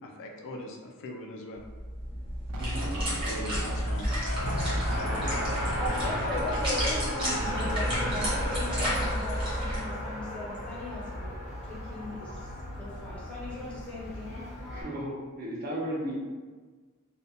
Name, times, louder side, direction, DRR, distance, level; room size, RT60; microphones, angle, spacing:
voice 1, 0.0-1.6 3.3-4.1, left 1 dB, 55° left, 1 dB, 0.3 m, -41 dB
sound 1, 1.6-9.8, equal, 25° right, 0.9 m, -31 dB
voice 2, 2.5-2.9 14.7-16.1, equal, 45° right, -4 dB, 0.6 m, -35 dB
sound 2, 2.5-4.1 4.7-9.8, right 2 dB, 90° right, 0.4 m, -38 dB
Race car auto racing, 3.5-14.8, left 1 dB, 80° left, 0.8 m, -35 dB
voice 3, 5.1-12.5 12.7-14.4, left 2 dB, 5° left, -7 dB, 0.6 m, -39 dB
2.5 x 2.2 x 2.7 m, 1.4 s
head